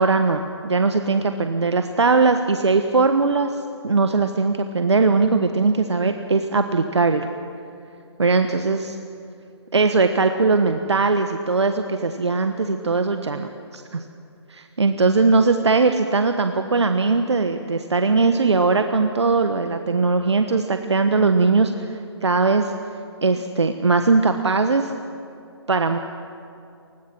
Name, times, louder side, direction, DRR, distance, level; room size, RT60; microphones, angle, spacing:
voice 1, 0.0-7.3 8.2-9.0 9.7-14.0 14.5-22.7 23.2-24.9 25.7-26.0, right 3 dB, 75° right, 7 dB, 1.3 m, -20 dB
28.5 x 20.5 x 6.1 m, 2.6 s
figure-of-eight pair, 140°, 15 cm